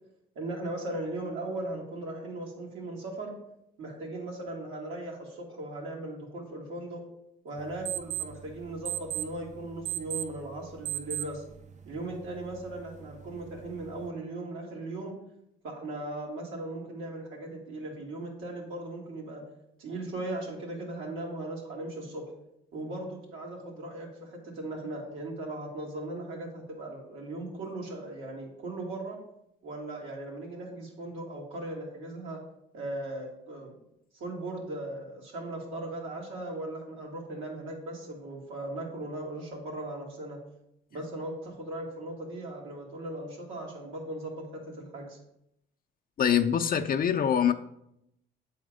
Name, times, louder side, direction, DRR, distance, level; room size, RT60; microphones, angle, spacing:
voice 1, 0.4-3.3 3.8-7.0 7.4-11.4 11.9-15.1 15.6-19.4 19.8-22.2 22.7-29.2 29.6-32.4 32.7-33.8 34.2-40.4 40.9-45.2, right 2 dB, 85° right, -1 dB, 2.1 m, -38 dB
sound 1, 7.6-14.1, right 13 dB, 35° right, 0.5 m, -39 dB
voice 2, 46.2-47.5, left 8 dB, 45° left, 5 dB, 0.5 m, -24 dB
7.8 x 4.2 x 5.0 m, 0.79 s
cardioid pair, 90°, 20 cm